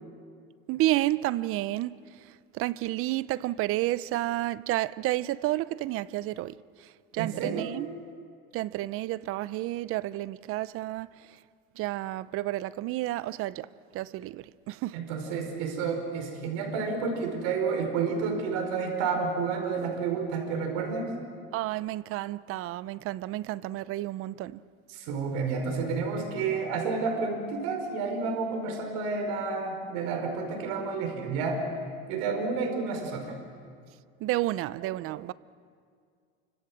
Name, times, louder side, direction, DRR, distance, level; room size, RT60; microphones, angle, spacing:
voice 1, 0.7-2.0 2.5-6.6 7.1-7.9 8.5-11.1 11.8-13.7 13.9-15.0 21.5-24.6 34.2-35.3, right 16 dB, 50° right, 0.8 m, -30 dB
voice 2, 7.2-7.8 14.9-21.1 24.9-31.6 32.1-33.3, right 5 dB, 65° right, 5.2 m, -30 dB
29.0 x 25.5 x 7.5 m
supercardioid pair, 120°, 29 cm